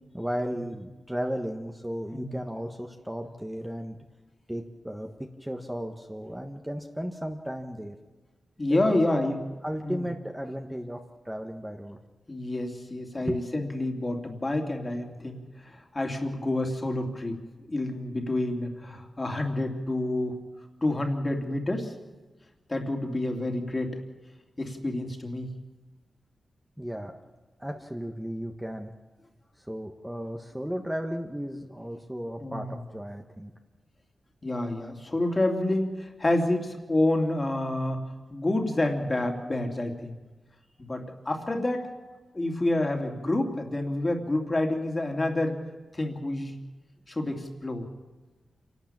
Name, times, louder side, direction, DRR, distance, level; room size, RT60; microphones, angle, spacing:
voice 1, 0.1-4.0 4.5-7.9 8.7-9.3 9.6-12.0 13.2-13.4 26.8-27.2 27.6-28.9 29.7-33.5, equal, 5° right, 3 dB, 1.5 m, -35 dB
voice 2, 8.6-9.4 9.8-10.1 12.3-17.4 17.7-20.4 20.8-21.9 22.7-24.0 24.6-25.5 32.4-32.8 34.4-38.0 38.3-40.2 40.8-41.9 42.3-45.6 45.9-46.5 47.1-47.8, left 1 dB, 30° left, 3 dB, 2.8 m, -28 dB
27.0 x 12.0 x 8.9 m, 1.3 s
wide cardioid pair, 85°, 0 cm